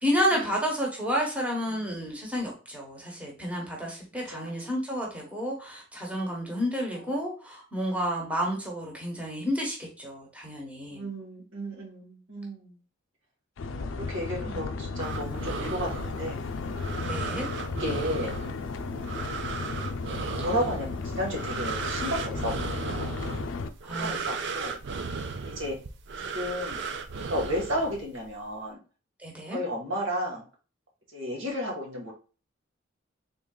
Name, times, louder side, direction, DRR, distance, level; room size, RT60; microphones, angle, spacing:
voice 1, 0.0-11.1 14.4-14.6 17.0-17.5 23.8-24.3 29.2-29.6, equal, 5° right, -2 dB, 1.1 m, -31 dB
voice 2, 10.9-12.7 13.9-16.4 17.8-18.3 20.3-23.1 23.9-24.7 25.4-25.7 26.3-26.8 27.3-28.8 29.5-30.4 31.1-32.1, equal, 85° right, -2 dB, 1.6 m, -33 dB
sound 1, 13.6-23.7, left 4 dB, 75° left, 0.4 m, -34 dB
sound 2, 15.0-28.3, right 5 dB, 65° right, 0.4 m, -36 dB
3.8 x 3.7 x 2.2 m, 0.35 s
head